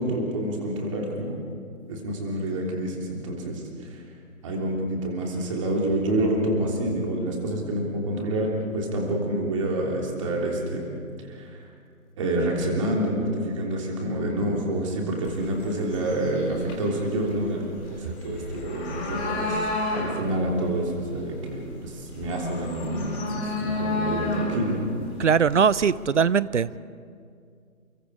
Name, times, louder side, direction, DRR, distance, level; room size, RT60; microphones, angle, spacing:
voice 1, 0.0-1.4 1.9-3.9 4.4-10.8 11.3-11.6 12.2-24.8, right 1 dB, 20° right, -1 dB, 3.3 m, -28 dB
sound 1, 15.2-26.1, left 2 dB, 10° left, 3.2 m, -32 dB
voice 2, 25.2-26.8, right 6 dB, 55° right, 20 dB, 0.6 m, -21 dB
29.5 x 23.5 x 4.9 m, 2.3 s
figure-of-eight pair, 160°, 42 cm